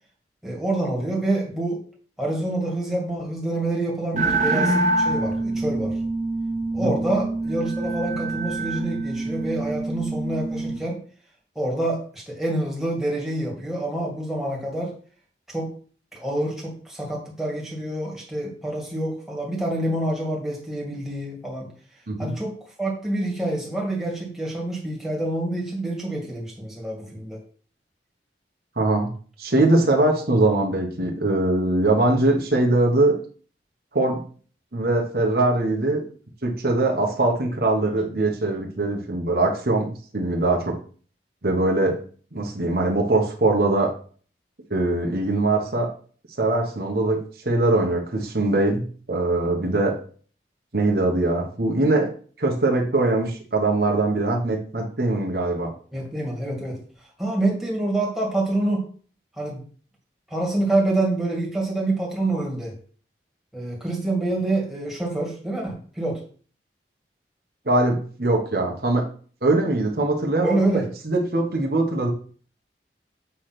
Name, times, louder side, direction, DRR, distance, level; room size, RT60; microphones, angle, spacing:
voice 1, 0.4-1.8 2.2-6.0 6.7-11.0 11.6-14.9 15.5-15.7 16.1-21.7 22.2-27.4 55.9-58.8 59.4-59.7 60.3-62.8 63.5-66.2 70.4-70.9, right 2 dB, ahead, -3 dB, 2.1 m, -27 dB
sound 1, 4.1-10.8, right 2 dB, 40° right, 1.0 m, -25 dB
voice 2, 28.8-29.1 29.4-33.2 33.9-34.2 34.7-36.0 36.4-39.9 40.1-40.8 41.4-42.0 42.3-43.9 44.7-45.9 46.4-47.2 47.4-49.9 50.7-52.1 52.4-55.7 67.6-69.1 69.4-72.1, right 2 dB, 60° right, 0 dB, 1.2 m, -22 dB
8.4 x 3.3 x 5.9 m, 0.43 s
head